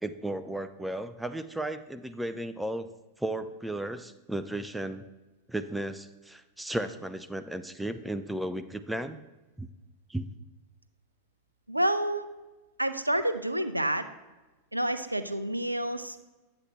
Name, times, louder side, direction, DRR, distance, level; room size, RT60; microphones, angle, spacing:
voice 1, 0.0-2.9 3.2-5.0 5.5-9.2 9.6-9.7 10.1-10.3, right 1 dB, 5° right, 10 dB, 0.3 m, -34 dB
voice 2, 11.7-12.3 12.8-14.1 14.7-16.2, right 1 dB, 85° right, 11 dB, 0.4 m, -28 dB
9.6 x 7.7 x 3.0 m, 1.1 s
figure-of-eight pair, 90°, 0 cm